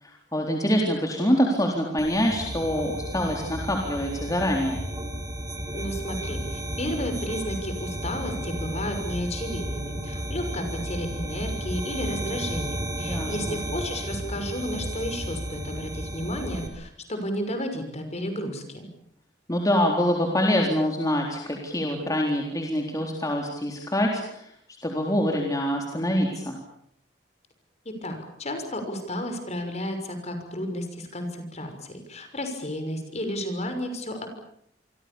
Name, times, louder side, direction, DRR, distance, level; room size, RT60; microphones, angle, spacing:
voice 1, 0.0-4.8 13.0-13.6 19.5-24.5 24.8-26.6, equal, 20° left, 0 dB, 3.9 m, -25 dB
sound 1, 2.0-16.7, right 1 dB, 20° right, 5.2 m, -33 dB
voice 2, 5.7-18.9 27.8-34.3, equal, 40° left, 7 dB, 6.2 m, -32 dB
28.0 x 24.5 x 7.2 m, 0.70 s
head